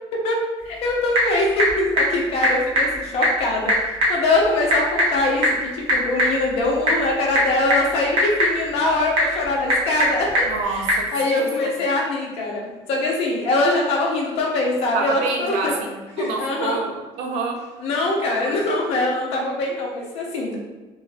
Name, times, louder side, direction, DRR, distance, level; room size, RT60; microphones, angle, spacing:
voice 1, 0.2-15.7 16.2-16.8 17.8-20.6, left 2 dB, 65° left, -2 dB, 0.7 m, -23 dB
Typing / Telephone, 0.6-11.1, equal, 45° right, 1.1 m, -23 dB
voice 2, 10.4-11.1 11.4-11.7 14.9-17.6 18.4-18.6, right 4 dB, 90° right, 1 dB, 0.6 m, -28 dB
3.0 x 2.5 x 2.4 m, 1.2 s
cardioid pair, 155°, 11 cm